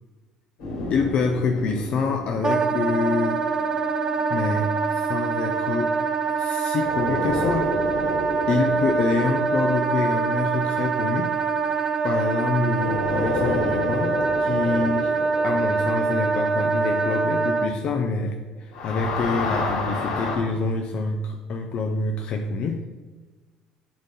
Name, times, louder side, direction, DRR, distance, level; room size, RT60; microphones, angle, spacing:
sound 1, 0.6-5.1 6.8-12.3 12.7-18.4 18.6-20.4, left 3 dB, 75° left, 2.3 m, -32 dB
voice 1, 0.9-3.4 4.3-6.0 6.3-7.8 8.5-11.3 12.0-15.1 15.4-22.8, left 4 dB, 55° left, 3 dB, 0.7 m, -26 dB
Wind instrument woodwind instrument, 2.4-17.7, right 5 dB, 25° right, 0.6 m, -24 dB
8.7 x 3.7 x 5.5 m, 1.3 s
hypercardioid pair, 65°, 2 cm